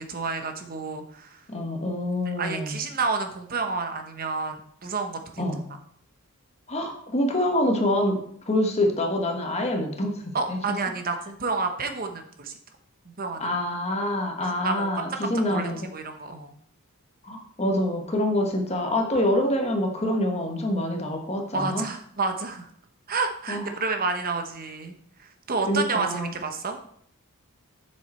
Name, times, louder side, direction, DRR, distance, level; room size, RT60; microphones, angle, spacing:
voice 1, 0.0-1.4 2.4-5.5 10.3-12.5 13.0-13.5 14.6-14.9 15.2-16.5 21.5-22.7 23.1-26.8, right 4 dB, 40° right, 6 dB, 1.0 m, -30 dB
voice 2, 1.5-2.7 5.4-5.6 6.7-8.2 8.5-10.6 13.4-15.8 17.2-21.8 23.5-23.7 25.7-26.4, left 1 dB, 30° left, 3 dB, 1.3 m, -26 dB
7.0 x 6.6 x 4.4 m, 0.64 s
head